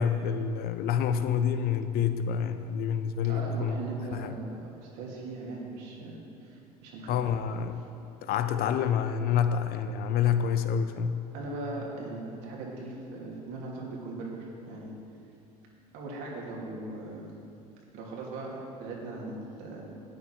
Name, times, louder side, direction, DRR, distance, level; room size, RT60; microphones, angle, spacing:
voice 1, 0.0-3.8 4.1-4.3 7.1-7.8 8.2-11.2, left 7 dB, 55° left, 10 dB, 0.8 m, -28 dB
voice 2, 3.3-7.2 11.3-14.9 15.9-17.3 17.9-18.5 18.8-19.8, right 2 dB, 65° right, -3 dB, 2.8 m, -39 dB
12.5 x 9.4 x 4.6 m, 2.6 s
hypercardioid pair, 75°, 19 cm